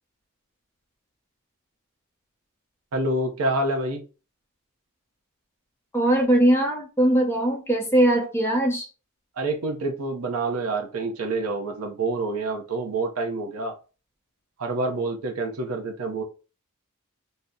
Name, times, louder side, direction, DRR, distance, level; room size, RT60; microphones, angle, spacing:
voice 1, 2.9-4.0 9.4-13.8 14.6-16.2, right 2 dB, 75° right, 0.6 m, -27 dB
voice 2, 5.9-8.9, right 1 dB, 10° left, 0.7 m, -20 dB
2.7 x 2.0 x 3.5 m
head